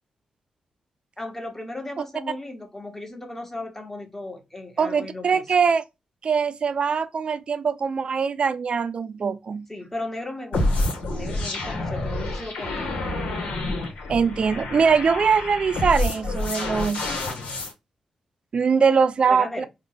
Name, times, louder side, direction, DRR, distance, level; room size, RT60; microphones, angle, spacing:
voice 1, 1.2-5.4 9.7-13.1 19.3-19.7, left 2 dB, 15° left, 1.2 m, -36 dB
voice 2, 4.8-5.8 6.2-9.7 14.1-17.2 18.5-19.6, right 6 dB, 55° right, 0.4 m, -22 dB
sound 1, 10.5-17.7, left 2 dB, 80° left, 1.1 m, -28 dB
3.9 x 2.3 x 3.4 m
cardioid pair, 55°, 2 cm